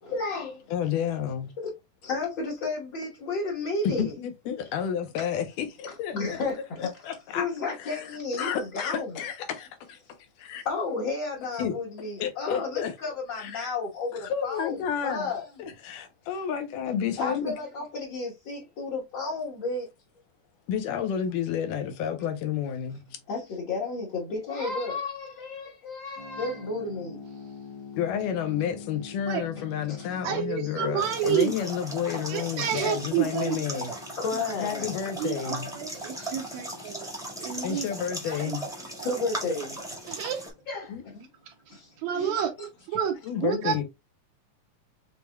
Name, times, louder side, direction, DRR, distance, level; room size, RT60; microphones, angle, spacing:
voice 1, 0.0-0.6 1.6-1.7 2.0-4.1 6.1-6.9 7.3-9.2 10.6-14.8 15.0-15.5 17.2-19.9 23.3-27.2 29.9-30.1 30.8-31.0 31.3-31.4 34.2-35.2 36.2-36.9 38.0-38.1 39.0-39.8 40.7-41.3 41.7-42.7, left 3 dB, 50° left, 1.4 m, -32 dB
voice 2, 0.7-1.5 3.8-6.4 6.8-7.5 7.8-8.1 8.3-10.0 10.4-10.6 11.6-11.8 12.2-12.9 13.4-13.7 14.2-15.3 15.6-17.5 20.7-23.2 27.9-33.9 34.6-35.8 37.6-38.7 40.9-41.0 43.2-43.8, left 8 dB, 90° left, 2.5 m, -31 dB
sound 1, 26.2-40.9, left 5 dB, 70° left, 1.6 m, -47 dB
voice 3, 30.2-31.5 32.3-33.9 35.2-37.1 37.4-37.9 38.3-38.6 40.1-40.4 42.0-42.5 42.9-43.1 43.4-43.8, right 9 dB, 75° right, 1.8 m, -29 dB
sound 2, 31.0-40.5, right 1 dB, 5° right, 0.6 m, -38 dB
6.7 x 3.5 x 2.2 m
omnidirectional pair, 3.6 m